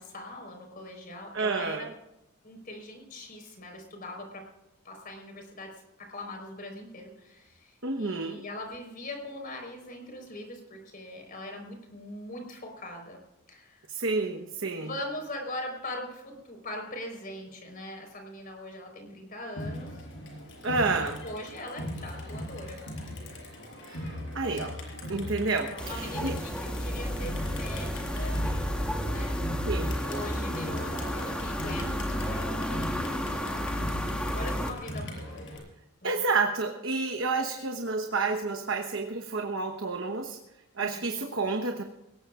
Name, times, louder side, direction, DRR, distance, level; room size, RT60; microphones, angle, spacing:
voice 1, 0.0-1.9 2.4-4.5 4.8-13.2 13.5-13.9 14.8-20.0 20.7-22.8 25.7-28.4 29.0-29.4 30.0-34.1 34.3-35.4 36.0-36.2 40.8-41.1, left 1 dB, 40° left, 3 dB, 4.5 m, -41 dB
voice 2, 1.3-1.9 7.8-8.4 13.9-14.9 20.6-21.2 23.8-24.8 25.1-26.4 29.7-30.0 36.0-40.4 40.8-41.8, right 3 dB, 60° right, 4 dB, 1.1 m, -30 dB
Crowd, 19.6-35.6, left 1 dB, 55° left, 5.5 m, -40 dB
sound 1, 25.8-34.7, equal, 5° left, 1.2 m, -31 dB
22.0 x 18.5 x 2.5 m, 0.91 s
head